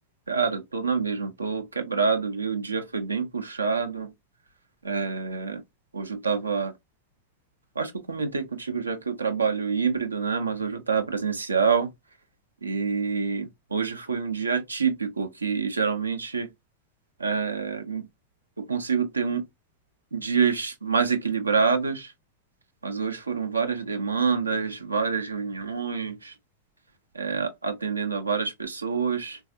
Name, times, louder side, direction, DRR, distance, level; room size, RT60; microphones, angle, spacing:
voice 1, 0.3-4.1 4.8-5.6 5.9-6.7 7.8-11.9 12.6-16.5 17.2-18.1 18.6-19.4 20.1-22.1 22.8-26.3 27.2-29.4, right 5 dB, 80° right, 0.5 m, -27 dB
3.4 x 2.3 x 2.5 m
figure-of-eight pair, 90°, 0 cm